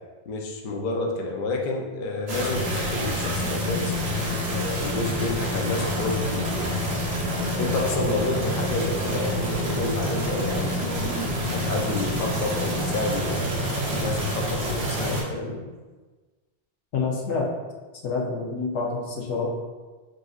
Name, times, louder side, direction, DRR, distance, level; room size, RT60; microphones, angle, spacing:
voice 1, 0.3-3.9 4.5-6.7 7.6-11.1 11.5-15.6, left 2 dB, 55° left, 1 dB, 0.6 m, -30 dB
sound 1, 2.3-15.2, equal, 90° right, 1.2 m, -27 dB
voice 2, 16.9-17.5 18.0-19.5, left 4 dB, 85° left, -1 dB, 1.0 m, -27 dB
6.1 x 2.6 x 2.3 m, 1.3 s
omnidirectional pair, 1.1 m